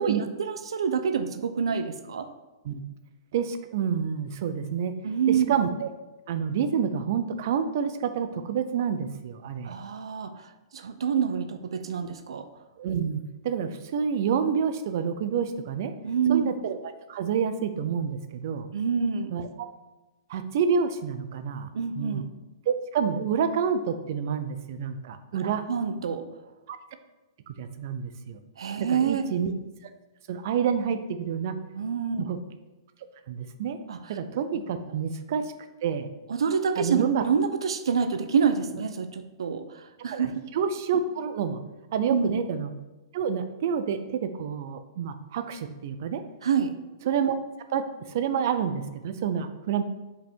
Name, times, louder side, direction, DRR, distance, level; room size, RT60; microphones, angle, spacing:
voice 1, 0.0-2.3 5.0-5.6 9.6-12.4 16.0-16.5 18.7-19.3 21.7-22.2 25.4-26.2 28.6-29.3 31.7-32.3 33.9-34.2 36.3-40.4 42.1-42.3 46.4-46.8, right 6 dB, 90° right, 10 dB, 0.7 m, -27 dB
voice 2, 3.3-4.9 5.3-5.9 6.3-9.7 12.8-15.9 16.3-16.8 17.1-18.7 19.3-19.7 20.3-21.7 22.0-22.2 22.7-25.6 26.7-26.8 27.5-28.4 28.8-29.5 30.3-31.6 32.2-32.4 33.3-33.8 34.1-35.5 35.8-36.1 36.8-37.2 40.1-41.6 41.9-42.7 43.1-46.2 47.0-47.4 47.7-49.8, right 7 dB, 35° right, 10 dB, 0.5 m, -28 dB
5.4 x 5.1 x 4.5 m, 1.1 s
hypercardioid pair, 180°, 3 cm